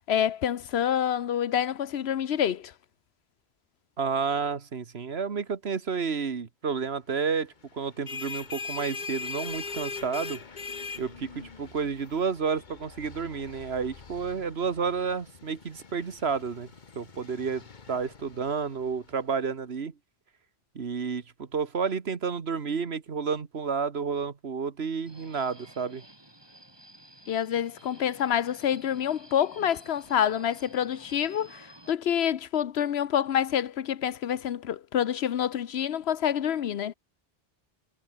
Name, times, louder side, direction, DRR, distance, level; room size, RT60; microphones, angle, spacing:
voice 1, 0.0-2.7 27.3-36.9, left 9 dB, 85° left, 1.1 m, -27 dB
voice 2, 4.0-10.4 11.0-16.7 16.9-19.9 20.7-26.0, right 5 dB, 85° right, 1.7 m, -31 dB
sound 1, 7.8-19.1, left 5 dB, 50° left, 1.4 m, -41 dB
Subway metro underground, 25.1-31.9, right 1 dB, 25° right, 3.1 m, -52 dB
omnidirectional pair, 1.0 m